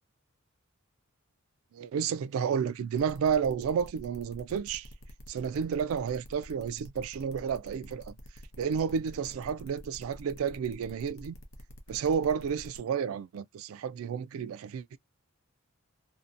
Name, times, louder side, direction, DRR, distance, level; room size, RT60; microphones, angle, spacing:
voice 1, 1.7-4.9 5.3-8.1 8.6-11.4 11.9-15.0, right 7 dB, 80° right, 0.3 m, -31 dB
sound 1, 3.0-12.8, equal, 70° left, 0.7 m, -49 dB
2.7 x 2.1 x 2.4 m
head